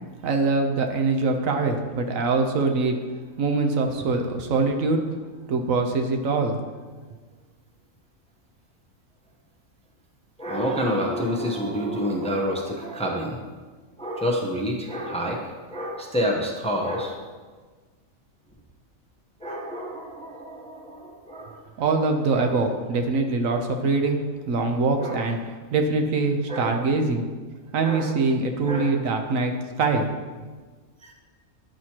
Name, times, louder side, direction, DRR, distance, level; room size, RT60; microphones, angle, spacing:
voice 1, 0.2-3.0 3.4-5.0 5.5-6.6 21.8-24.2 24.5-25.4 25.7-27.2 27.7-29.5 29.8-30.1, right 3 dB, 80° right, 5 dB, 1.2 m, -23 dB
voice 2, 10.4-13.4 14.0-15.4 15.7-17.2 19.4-21.6 22.3-22.5 25.0-25.3 26.5-26.8 27.8-28.1 28.6-28.9 31.0-31.1, equal, 5° left, 0 dB, 0.6 m, -28 dB
10.0 x 6.1 x 2.9 m, 1.4 s
omnidirectional pair, 1.4 m